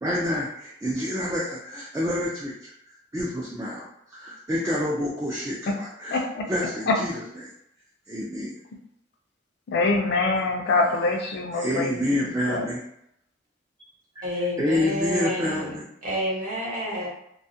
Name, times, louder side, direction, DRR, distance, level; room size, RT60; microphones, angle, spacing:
voice 1, 0.0-2.7 3.1-3.9 4.1-7.2 8.1-8.5 11.6-12.8 14.6-15.8, left 1 dB, 15° right, -5 dB, 0.3 m, -28 dB
voice 2, 6.1-6.4 6.9-7.0 9.7-12.7, left 3 dB, 60° left, 1 dB, 0.4 m, -25 dB
voice 3, 14.2-15.7 16.0-17.1, equal, 45° right, -6 dB, 0.9 m, -29 dB
2.3 x 2.1 x 2.6 m, 0.76 s
head